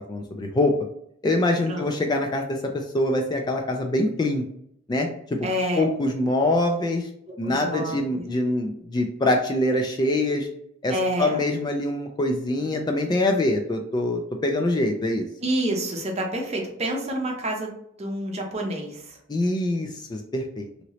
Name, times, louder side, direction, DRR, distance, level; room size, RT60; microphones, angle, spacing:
voice 1, 0.1-0.7 1.2-4.4 4.9-5.5 5.7-7.1 7.4-10.5 10.8-15.3 19.3-20.8, left 1 dB, 20° left, 4 dB, 0.3 m, -24 dB
voice 2, 5.4-5.8 7.4-8.3 10.9-11.4 15.4-17.7 18.0-19.2, equal, 35° right, 1 dB, 0.7 m, -28 dB
2.9 x 2.8 x 2.9 m, 0.73 s
head